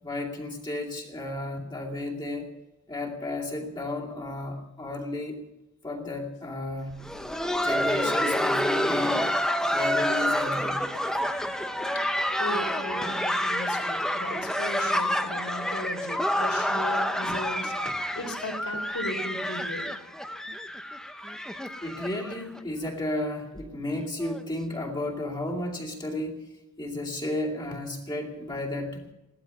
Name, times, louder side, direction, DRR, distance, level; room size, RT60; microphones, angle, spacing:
voice 1, 0.0-2.5 2.9-5.4 5.8-7.1 7.6-9.4 9.7-10.9 21.8-26.5 26.8-29.1, left 1 dB, 20° left, -1 dB, 2.4 m, -33 dB
Laughter, 6.9-22.6 22.9-23.0 23.6-23.7 24.2-24.4 25.5-25.6, equal, 5° left, 0.7 m, -28 dB
voice 2, 12.4-19.8, left 1 dB, 70° left, 4 dB, 3.5 m, -36 dB
17.0 x 12.5 x 5.6 m, 0.99 s
head